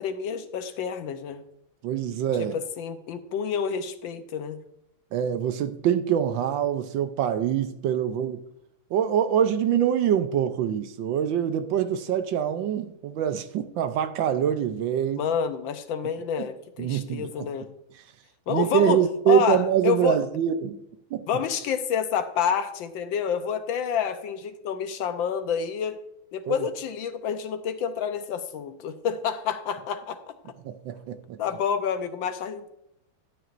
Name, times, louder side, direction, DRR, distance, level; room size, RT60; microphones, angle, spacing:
voice 1, 0.0-1.4 2.5-4.6 15.1-17.7 18.5-20.2 21.3-26.0 26.3-30.2 31.4-32.7, left 7 dB, 75° left, 1.4 m, -28 dB
voice 2, 1.8-2.6 5.1-8.4 8.9-15.3 16.4-16.5 16.8-17.5 18.5-20.7 21.1-21.2 26.5-26.6 30.6-31.4, right 9 dB, 70° right, 1.3 m, -25 dB
12.5 x 9.1 x 2.5 m
omnidirectional pair, 2.3 m